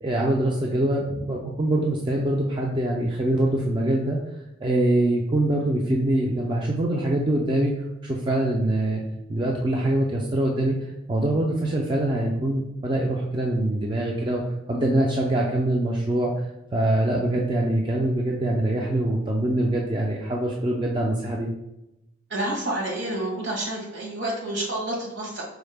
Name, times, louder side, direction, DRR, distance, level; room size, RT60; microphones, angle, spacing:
voice 1, 0.0-4.2 4.6-7.7 8.0-9.0 9.3-10.8 11.1-14.4 14.7-16.3 16.7-21.5, right 1 dB, 25° right, -2 dB, 0.3 m, -24 dB
voice 2, 22.3-25.4, right 1 dB, 65° right, -2 dB, 1.2 m, -29 dB
4.7 x 2.1 x 3.3 m, 0.88 s
head